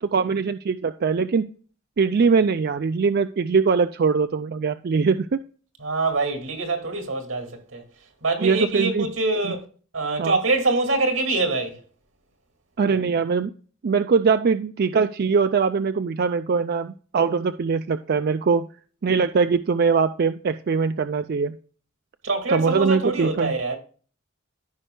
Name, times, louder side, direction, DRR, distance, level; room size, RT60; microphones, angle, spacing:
voice 1, 0.0-1.5 2.0-5.4 8.4-9.1 9.4-9.5 10.2-10.4 12.8-13.5 13.8-18.7 19.0-21.5 22.5-23.5, right 5 dB, 50° right, 0.4 m, -22 dB
voice 2, 5.8-7.8 8.2-9.6 9.9-11.8 22.2-23.8, right 3 dB, 80° right, 2.1 m, -24 dB
14.0 x 5.5 x 2.2 m
head